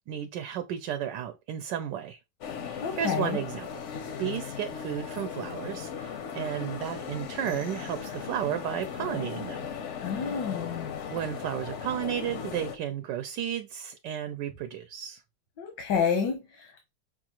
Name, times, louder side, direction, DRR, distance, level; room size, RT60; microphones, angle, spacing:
voice 1, 0.1-2.2 2.6-3.7 4.2-9.7 10.1-10.5 11.1-15.2, right 10 dB, 80° right, 1.2 m, -33 dB
sound 1, 2.4-12.8, left 7 dB, 65° left, 0.7 m, -37 dB
voice 2, 2.8-3.4 10.0-10.9 15.6-16.9, left 6 dB, 85° left, 1.5 m, -29 dB
6.1 x 2.4 x 2.9 m
omnidirectional pair, 1.9 m